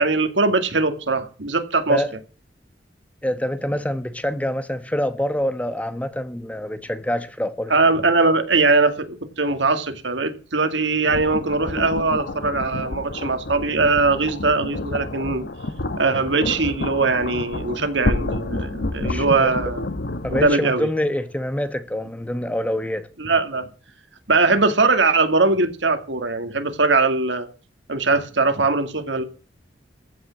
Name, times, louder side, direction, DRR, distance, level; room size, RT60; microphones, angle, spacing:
voice 1, 0.0-2.0 7.7-15.4 16.0-19.8 20.3-20.9 23.2-23.7 24.3-27.5 27.9-29.2, right 3 dB, 90° right, 2.1 m, -21 dB
voice 2, 3.2-7.7 19.0-19.5 20.2-23.1, left 1 dB, 10° left, 1.0 m, -26 dB
sound 1, 11.1-20.6, left 2 dB, 65° left, 1.1 m, -29 dB
14.5 x 6.3 x 8.3 m
head